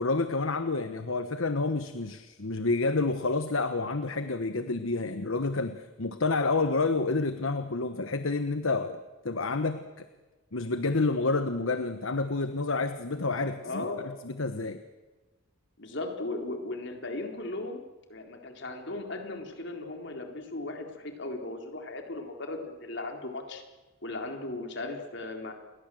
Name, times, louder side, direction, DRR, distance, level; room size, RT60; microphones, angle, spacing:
voice 1, 0.0-9.0 9.2-10.1 10.5-13.9 14.2-14.8, left 3 dB, 70° left, 10 dB, 1.2 m, -29 dB
voice 2, 13.6-14.1 15.8-17.8 18.1-23.6 24.0-25.5, left 2 dB, 55° left, 4 dB, 3.9 m, -37 dB
29.0 x 22.5 x 7.8 m, 1.2 s
head